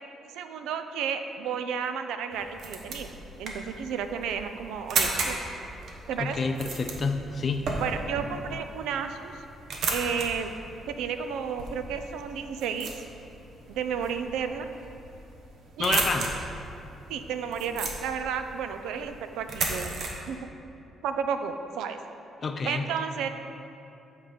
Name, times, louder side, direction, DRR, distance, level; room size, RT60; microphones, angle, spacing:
voice 1, 0.4-5.4 6.1-6.4 7.8-9.4 9.9-10.5 10.9-12.9 13.7-14.7 15.8-16.1 17.1-20.0 20.3-20.5 21.0-22.0 22.6-23.3, right 7 dB, 90° right, 8 dB, 0.4 m, -32 dB
sound 1, 2.3-20.1, right 3 dB, 70° right, 1.0 m, -35 dB
voice 2, 6.2-7.7 15.8-16.3 22.4-22.9, left 4 dB, 40° left, 5 dB, 0.5 m, -28 dB
7.8 x 3.8 x 6.4 m, 2.8 s
cardioid pair, 90°, 0 cm